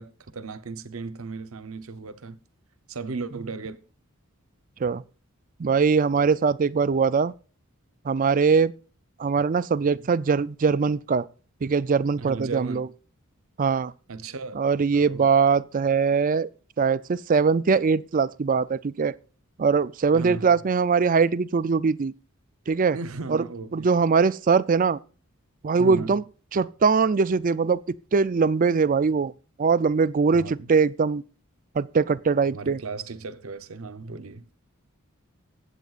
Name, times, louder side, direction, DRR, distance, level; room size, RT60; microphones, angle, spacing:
voice 1, 0.0-2.4 2.9-3.8 9.9-10.1 12.2-12.9 14.1-14.6 14.9-15.3 20.1-20.5 22.9-24.0 25.8-26.2 30.3-30.7 32.5-34.5, right 4 dB, 75° right, 0.9 m, -36 dB
voice 2, 5.6-7.3 8.0-8.7 9.2-11.3 11.6-12.9 13.6-13.9 14.5-16.5 16.8-19.1 19.6-22.1 22.7-23.0 23.3-23.4 23.7-25.0 25.6-26.2 26.5-29.3 29.6-31.2 31.8-32.8, right 5 dB, 40° right, 0.4 m, -22 dB
21.5 x 8.3 x 2.5 m
head